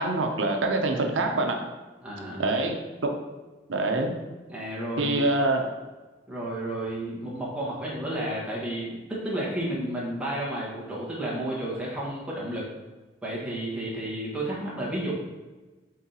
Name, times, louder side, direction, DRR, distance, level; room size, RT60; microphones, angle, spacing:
voice 1, 0.0-1.6 2.4-2.8 3.7-4.1 5.0-5.6, right 2 dB, 85° right, 3 dB, 0.7 m, -25 dB
voice 2, 2.0-2.6 4.5-5.2 6.3-12.6 13.2-15.1, right 1 dB, 5° right, -7 dB, 1.6 m, -32 dB
8.6 x 3.7 x 2.9 m, 1.2 s
head